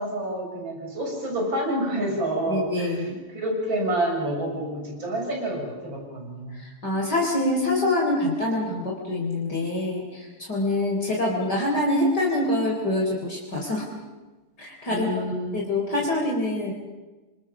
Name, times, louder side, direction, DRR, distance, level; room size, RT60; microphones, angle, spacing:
voice 1, 0.0-2.9 3.3-6.6 14.8-15.6, right 1 dB, 60° right, 0 dB, 7.9 m, -28 dB
voice 2, 2.5-3.2 6.5-13.9 14.6-15.1 15.5-16.7, left 1 dB, 45° left, -2 dB, 4.4 m, -25 dB
29.0 x 25.5 x 7.1 m, 1.2 s
omnidirectional pair, 2.4 m